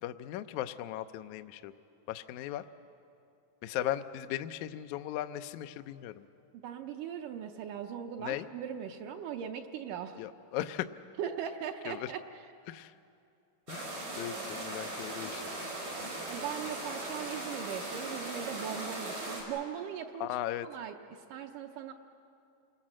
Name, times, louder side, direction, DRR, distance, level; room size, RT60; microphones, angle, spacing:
voice 1, 0.0-1.7 2.1-2.6 3.6-6.3 8.2-8.4 10.2-10.9 11.9-12.1 12.7-12.9 13.7-15.4 20.2-20.7, left 13 dB, 80° left, 9 dB, 1.7 m, -37 dB
voice 2, 6.5-10.2 11.2-12.4 16.3-20.3 20.6-21.9, right 8 dB, 75° right, 4 dB, 2.2 m, -39 dB
sound 1, 13.7-19.4, right 2 dB, 90° right, 6.8 m, -39 dB
28.0 x 20.5 x 7.5 m, 2.6 s
omnidirectional pair, 4.2 m